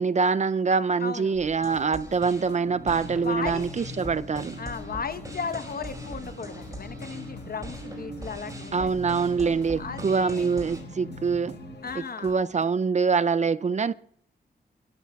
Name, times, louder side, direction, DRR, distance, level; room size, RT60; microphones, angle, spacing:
voice 1, 0.0-4.6 8.7-11.5 12.2-13.9, right 5 dB, 40° right, 0.4 m, -25 dB
voice 2, 1.0-1.3 3.1-3.7 4.6-8.9 9.8-10.5 11.8-12.3, left 5 dB, 55° left, 1.1 m, -35 dB
sound 1, 1.3-10.8, right 1 dB, 20° right, 5.1 m, -43 dB
sound 2, 1.6-12.6, left 5 dB, 75° left, 1.7 m, -48 dB
sound 3, 2.6-11.8, equal, 70° right, 1.3 m, -42 dB
28.5 x 13.0 x 2.3 m
cardioid pair, 75°, 18 cm